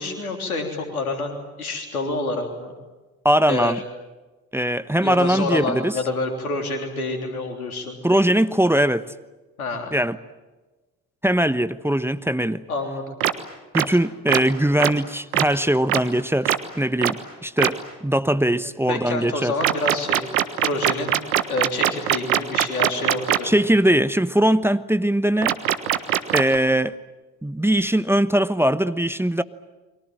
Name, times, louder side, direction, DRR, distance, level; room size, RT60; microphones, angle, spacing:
voice 1, 0.0-2.7 3.5-3.7 5.0-8.0 9.6-9.9 12.7-13.1 18.9-20.2 20.6-21.2 21.5-23.5, left 2 dB, 90° left, 5 dB, 3.5 m, -27 dB
voice 2, 3.2-3.8 4.5-6.0 8.0-9.1 9.9-10.2 11.2-12.6 13.7-19.5 23.4-25.6 26.3-27.0 27.4-29.4, right 1 dB, 5° right, 13 dB, 1.1 m, -21 dB
sound 1, 13.2-13.3 13.7-13.9 14.3-14.4 14.8-14.9 15.3-15.4 15.9-16.0 16.5-16.6 17.0-17.1 17.6-17.7 19.6-23.4 25.4-26.6, right 13 dB, 80° right, 1.5 m, -20 dB
30.0 x 23.5 x 7.6 m, 1.2 s
hypercardioid pair, 50°, 42 cm